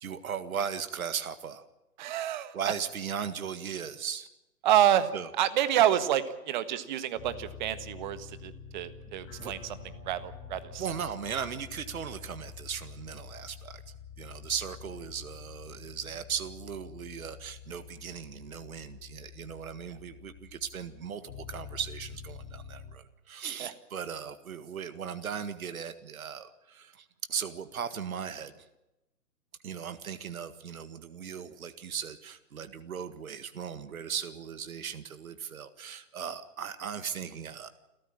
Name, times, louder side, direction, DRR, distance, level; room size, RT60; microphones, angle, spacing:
voice 1, 0.0-1.7 2.5-4.3 5.1-5.3 9.4-9.5 10.8-13.8 14.2-28.5 29.6-37.7, right 7 dB, 60° right, 11 dB, 1.9 m, -37 dB
voice 2, 2.0-2.5 4.6-5.1 5.4-9.8 10.0-10.9 23.6-23.7, right 11 dB, 30° right, 13 dB, 1.6 m, -28 dB
sound 1, 7.1-22.9, left 7 dB, 25° left, 7.3 m, -47 dB
29.0 x 14.0 x 8.9 m, 0.95 s
figure-of-eight pair, 145°, 48 cm